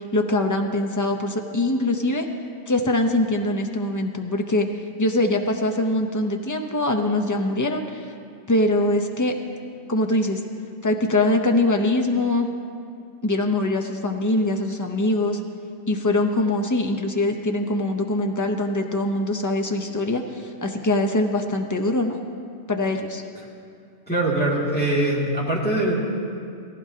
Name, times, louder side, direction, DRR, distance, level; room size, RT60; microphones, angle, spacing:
voice 1, 0.1-2.3 2.7-4.7 5.0-8.1 8.5-9.3 9.9-10.4 10.8-12.5 13.2-15.4 15.9-22.2 22.7-23.2, left 2 dB, 25° left, 4 dB, 0.4 m, -23 dB
voice 2, 24.1-25.9, right 1 dB, 5° left, -5 dB, 2.1 m, -22 dB
17.5 x 15.0 x 2.8 m, 2.4 s
omnidirectional pair, 1.4 m